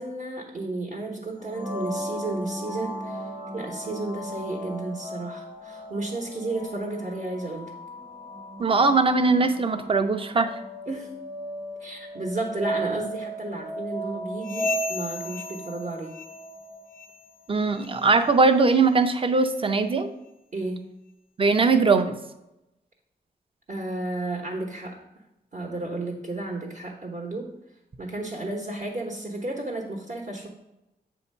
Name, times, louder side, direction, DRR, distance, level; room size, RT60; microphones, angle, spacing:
voice 1, 0.0-3.2 3.5-7.7 10.9-11.1 11.8-16.1 20.5-20.9 23.7-25.0 25.5-27.5 28.0-30.5, right 2 dB, 50° right, 0 dB, 1.0 m, -32 dB
sound 1, 1.4-17.0, right 1 dB, 15° right, 1.0 m, -36 dB
voice 2, 8.6-10.5 17.5-20.1 21.4-22.1, right 4 dB, 30° right, 8 dB, 0.5 m, -20 dB
sound 2, 14.4-16.6 16.9-17.3 17.7-18.0 18.6-18.7 19.4-19.5 20.3-20.4, left 7 dB, 55° left, 0.4 m, -37 dB
8.1 x 2.8 x 5.4 m, 0.92 s
wide cardioid pair, 115°, 17 cm